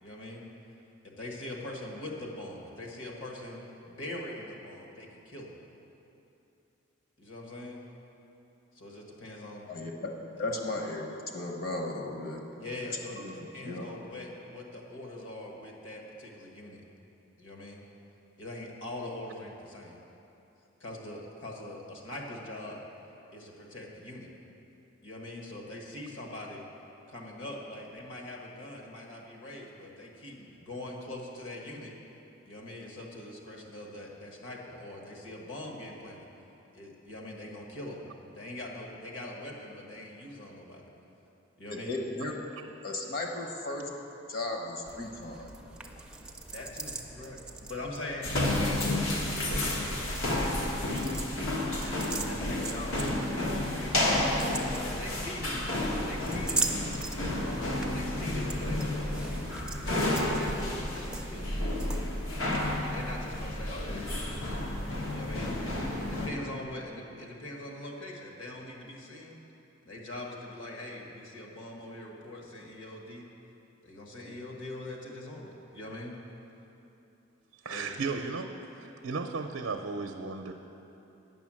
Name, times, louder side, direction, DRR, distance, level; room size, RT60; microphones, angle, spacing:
voice 1, 0.0-0.4 1.0-5.6 7.2-7.8 8.7-9.9 10.4-10.5 12.6-13.2 13.5-16.9 17.4-17.8 18.4-20.0 20.8-22.8 23.3-24.3 25.0-26.6 27.1-31.9 32.4-36.3 36.7-38.0 38.3-40.8 41.6-41.9 46.5-51.2 51.6-53.2 53.7-54.4 54.7-56.7 57.3-59.3 59.7-61.5 62.8-64.6 65.1-65.6 65.9-69.4 69.8-73.3 73.8-76.2 77.7-77.9, left 1 dB, 65° left, 0 dB, 1.5 m, -42 dB
voice 2, 9.7-10.1 10.4-12.4 13.1-13.3 13.6-13.9 41.7-42.3 42.8-43.9 44.3-45.5, left 2 dB, 45° left, 1 dB, 1.0 m, -35 dB
sound 1, 44.8-62.5, right 3 dB, 5° right, 0.4 m, -41 dB
sound 2, 48.2-66.3, left 1 dB, 85° left, 1.3 m, -31 dB
voice 3, 77.6-80.5, right 4 dB, 80° right, 3 dB, 0.5 m, -35 dB
9.2 x 6.3 x 7.5 m, 2.9 s
head